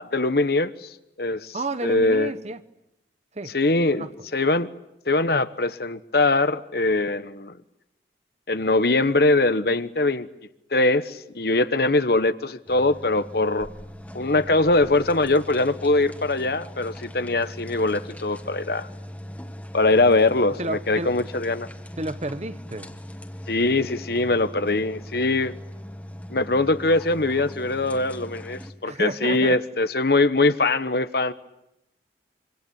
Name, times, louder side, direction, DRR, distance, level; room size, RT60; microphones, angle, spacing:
voice 1, 0.0-1.6 1.8-2.3 3.5-4.1 4.3-4.7 5.1-7.5 8.5-10.3 10.7-13.7 14.1-18.9 19.7-21.7 23.5-25.5 26.3-31.3, left 2 dB, 55° left, 1.1 m, -22 dB
voice 2, 1.5-2.6 3.3-3.5 3.9-4.1 20.6-21.1 22.0-22.9 28.8-29.6, right 2 dB, 35° right, 1.0 m, -31 dB
sound 1, 12.7-28.7, equal, 10° left, 2.0 m, -40 dB
26.0 x 25.5 x 8.7 m
head